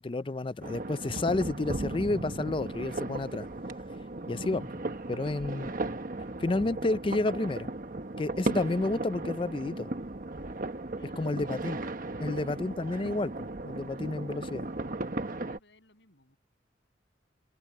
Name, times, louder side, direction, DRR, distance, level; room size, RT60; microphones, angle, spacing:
voice 1, 0.0-3.5 4.3-4.7 5.1-6.0 6.4-7.7 8.2-9.9 11.2-11.8 12.2-14.7, left 2 dB, 30° left, 0.4 m, -31 dB
sound 1, 0.6-15.6, right 2 dB, 50° right, 1.2 m, -36 dB
voice 2, 10.9-11.6 12.1-12.6 15.4-16.4, left 2 dB, 80° left, 7.5 m, -61 dB
head